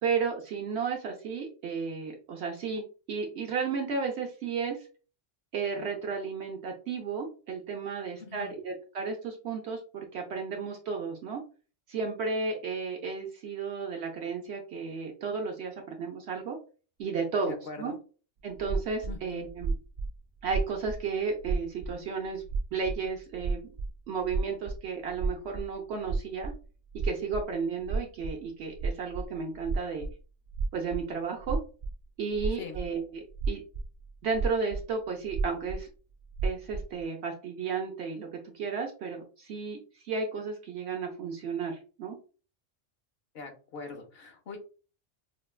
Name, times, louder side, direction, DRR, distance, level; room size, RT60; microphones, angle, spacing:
voice 1, 0.0-2.8 3.1-4.9 5.5-11.4 11.9-16.6 17.0-17.9 18.4-19.7 20.4-22.4 22.7-23.7 24.1-26.5 26.9-30.1 30.7-31.6 32.2-33.6 34.2-35.9 36.4-42.2, right 5 dB, 65° right, 2 dB, 0.8 m, -33 dB
voice 2, 8.2-8.5 17.5-18.0 19.0-19.5 32.6-32.8 43.3-44.6, left 4 dB, 55° left, 4 dB, 0.9 m, -42 dB
sound 1, 18.5-21.9 22.2-23.9 24.2-24.8 25.1-25.7 26.0-26.6 26.9-27.5 27.8-28.4 28.7-30.1 30.5-31.0 31.4-31.9 32.3-32.9 33.3-34.9 35.3-35.8 36.3-37.0, right 4 dB, 85° right, 0.3 m, -32 dB
4.3 x 2.2 x 2.3 m, 0.37 s
omnidirectional pair, 1.3 m